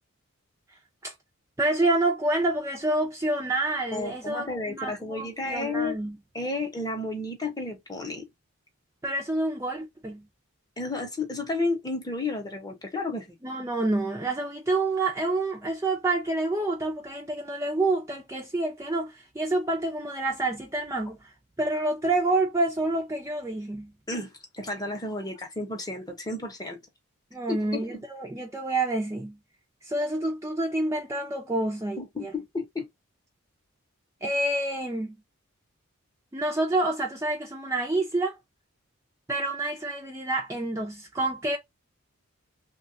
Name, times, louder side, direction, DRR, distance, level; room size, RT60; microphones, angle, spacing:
voice 1, 1.6-6.2 9.0-10.2 13.4-23.9 27.3-29.4 29.8-32.3 34.2-35.2 36.3-38.4 39.3-41.6, right 2 dB, 15° right, 0.4 m, -28 dB
voice 2, 3.9-6.0 6.3-8.3 10.8-13.4 24.1-26.8 27.5-28.0 32.0-32.9, left 2 dB, 15° left, 0.7 m, -32 dB
3.1 x 2.2 x 2.6 m
head